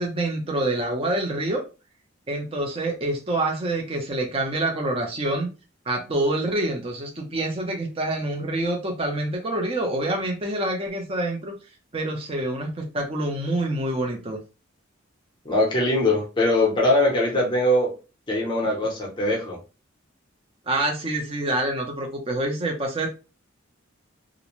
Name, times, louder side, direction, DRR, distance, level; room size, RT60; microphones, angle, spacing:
voice 1, 0.0-1.6 2.3-5.5 5.9-11.5 11.9-14.4 20.7-23.1, right 1 dB, 30° right, 0.5 m, -26 dB
voice 2, 15.5-17.9 18.3-19.6, left 1 dB, 25° left, 0.6 m, -21 dB
2.4 x 2.0 x 3.0 m
head